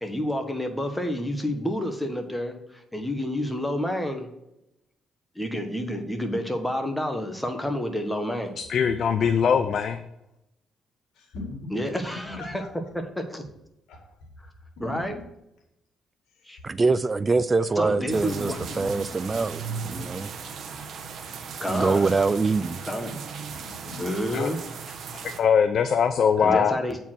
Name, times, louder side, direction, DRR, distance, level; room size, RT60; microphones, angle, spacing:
voice 1, 0.0-4.3 5.3-8.6 11.7-12.6 12.9-13.5 14.8-15.2 16.4-16.6 17.8-18.6 21.6-22.1 22.8-23.2 24.0-24.6 26.4-27.0, equal, 5° left, 1.3 m, -29 dB
voice 2, 8.7-10.0 24.3-24.5 25.2-26.8, left 7 dB, 60° left, 0.5 m, -21 dB
voice 3, 11.1-12.8 13.9-14.2 14.8-15.2 16.3-16.6 17.6-20.2 23.5-24.1, left 2 dB, 85° left, 2.2 m, -42 dB
voice 4, 16.6-19.6 19.9-20.3 21.7-22.8, right 4 dB, 25° right, 0.3 m, -24 dB
sound 1, 18.1-25.4, right 5 dB, 60° right, 1.0 m, -37 dB
8.2 x 4.5 x 6.0 m
cardioid pair, 90°, 0 cm